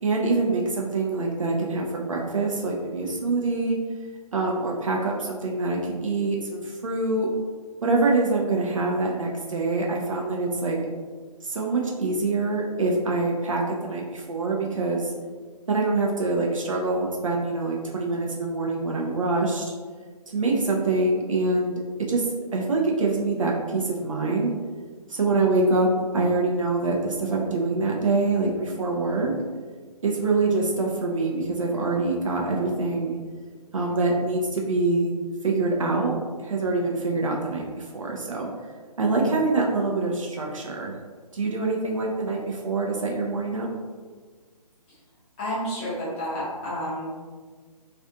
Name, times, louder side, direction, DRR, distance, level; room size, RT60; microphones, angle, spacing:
voice 1, 0.0-3.8 4.3-7.3 7.8-10.8 11.4-15.1 15.7-19.7 20.3-22.3 22.5-24.6 25.1-29.3 30.0-33.2 33.7-35.1 35.4-38.5 39.0-41.0 41.3-43.7, right 3 dB, 55° right, -1 dB, 0.4 m, -25 dB
voice 2, 45.4-47.1, equal, 15° left, -10 dB, 0.6 m, -30 dB
2.4 x 2.3 x 2.6 m, 1.5 s
figure-of-eight pair, 140°, 21 cm